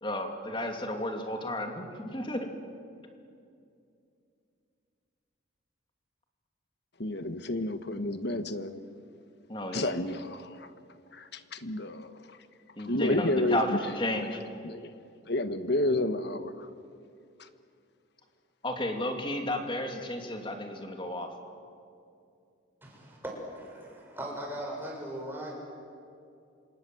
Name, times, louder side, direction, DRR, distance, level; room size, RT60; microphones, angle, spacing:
voice 1, 0.0-2.5 9.5-9.9 12.8-14.4 18.6-21.3, left 1 dB, 25° left, 4 dB, 2.7 m, -32 dB
voice 2, 7.0-8.7 9.7-10.7 11.1-12.4 12.8-13.8 14.6-14.9 15.3-16.7 17.4-17.5, left 1 dB, 55° left, 10 dB, 1.3 m, -30 dB
voice 3, 22.8-25.5, right 1 dB, 10° right, -2 dB, 6.5 m, -39 dB
27.0 x 26.5 x 7.9 m, 2.5 s
head